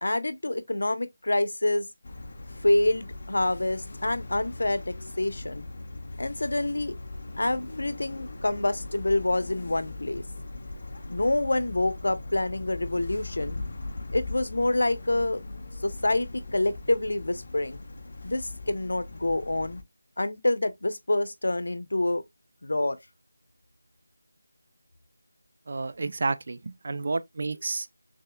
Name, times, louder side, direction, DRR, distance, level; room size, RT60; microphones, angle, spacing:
voice 1, 0.0-1.9 2.6-5.7 6.2-6.9 7.4-10.2 11.1-13.6 14.1-15.4 15.8-17.8 18.2-19.8 20.2-22.2 22.6-23.0, left 2 dB, 70° left, 0.9 m, -27 dB
sound 1, 2.0-19.8, left 2 dB, 40° left, 0.8 m, -40 dB
voice 2, 25.7-27.9, right 3 dB, 35° right, 0.4 m, -30 dB
6.5 x 3.4 x 2.3 m
figure-of-eight pair, 175°, 0 cm